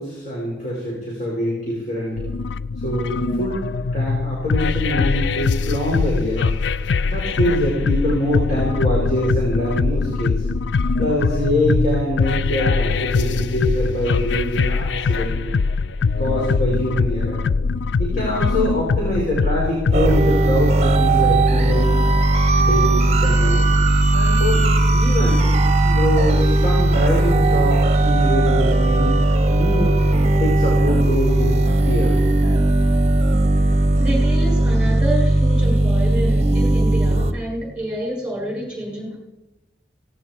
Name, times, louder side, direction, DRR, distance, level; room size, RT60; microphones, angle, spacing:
voice 1, 0.0-2.3 2.8-6.5 7.0-10.4 11.0-15.4 16.2-17.4 18.0-22.1 22.6-23.7 24.1-25.5 25.8-29.2 29.5-30.0 30.4-32.2, equal, 40° left, -4 dB, 5.7 m, -24 dB
sound 1, 2.2-20.2, left 4 dB, 75° left, 0.4 m, -22 dB
sound 2, 19.9-37.3, right 2 dB, 35° right, 1.0 m, -17 dB
voice 2, 34.0-39.2, right 1 dB, 5° right, -3 dB, 6.8 m, -28 dB
18.0 x 17.5 x 4.6 m, 1.0 s
head